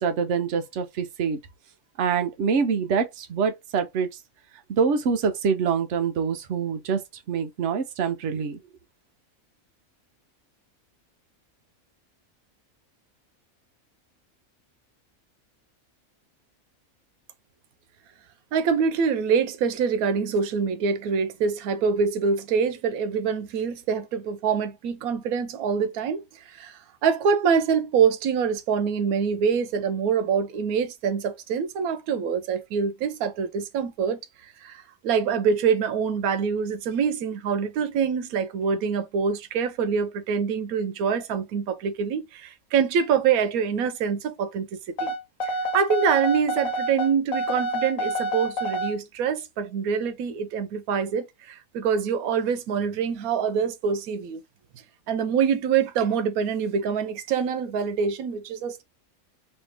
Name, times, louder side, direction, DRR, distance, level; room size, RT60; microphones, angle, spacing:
voice 1, 0.0-1.4 2.0-4.1 4.7-7.0 7.3-8.6, right 6 dB, 60° right, 1.0 m, -25 dB
voice 2, 18.5-34.2 34.6-45.1 45.4-54.4 55.1-58.8, right 6 dB, 90° right, 1.1 m, -25 dB
sound 1, 45.0-49.0, right 1 dB, 70° left, 1.3 m, -28 dB
3.2 x 2.7 x 3.3 m
omnidirectional pair, 1.5 m